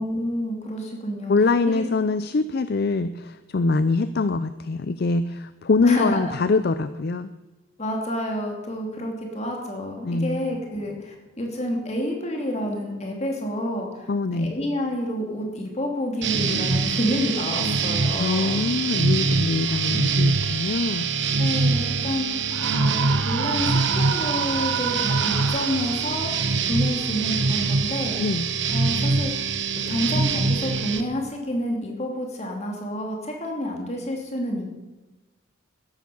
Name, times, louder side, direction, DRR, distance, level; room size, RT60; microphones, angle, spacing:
voice 1, 0.0-1.3 1.7-1.8 5.8-6.2 7.8-18.7 21.4-26.3 26.7-28.2 28.7-29.5 29.9-34.6, equal, 30° left, 1 dB, 2.8 m, -29 dB
voice 2, 1.3-7.3 10.0-10.4 14.1-14.5 18.2-21.1 28.2-28.5, left 3 dB, 50° left, 13 dB, 0.4 m, -23 dB
sound 1, 16.2-31.0, right 4 dB, 55° right, 1.1 m, -24 dB
Screaming, 22.5-26.2, right 8 dB, 80° right, 0.4 m, -30 dB
13.0 x 10.5 x 7.0 m, 1.1 s
head